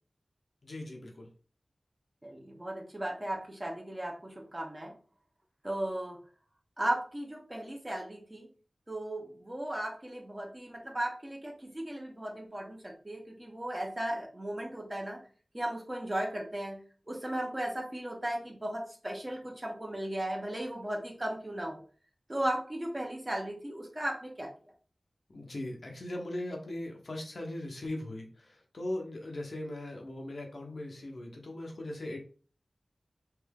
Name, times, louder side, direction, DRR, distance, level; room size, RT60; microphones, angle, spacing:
voice 1, 0.6-1.3 25.3-32.2, left 1 dB, 75° left, 1 dB, 0.9 m, -39 dB
voice 2, 2.2-4.9 5.6-6.2 6.8-8.5 8.9-15.2 15.5-16.8 17.1-21.8 22.3-24.5, right 1 dB, 25° right, 0 dB, 1.0 m, -36 dB
3.4 x 2.7 x 3.5 m, 0.39 s
wide cardioid pair, 60°, 0 cm